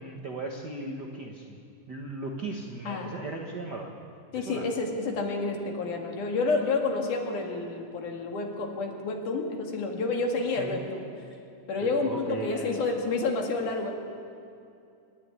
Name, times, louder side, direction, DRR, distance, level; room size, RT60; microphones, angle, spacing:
voice 1, 0.0-1.6 1.9-3.9 4.3-4.7 10.6-10.8 11.8-12.8, right 3 dB, 50° right, 0 dB, 1.3 m, -37 dB
voice 2, 4.3-11.1 11.7-13.9, left 3 dB, 70° left, 2 dB, 3.5 m, -29 dB
26.5 x 10.0 x 9.8 m, 2.5 s
omnidirectional pair, 3.7 m